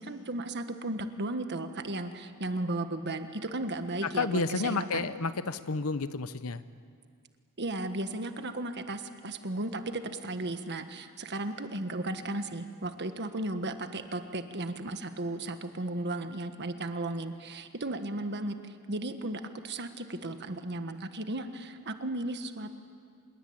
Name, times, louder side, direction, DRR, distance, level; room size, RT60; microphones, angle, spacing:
voice 1, 0.0-5.1 7.6-18.5 18.9-22.7, right 2 dB, 50° right, 8 dB, 1.5 m, -35 dB
voice 2, 4.1-6.6, left 3 dB, 65° left, 13 dB, 0.9 m, -30 dB
26.0 x 21.5 x 8.8 m, 2.2 s
head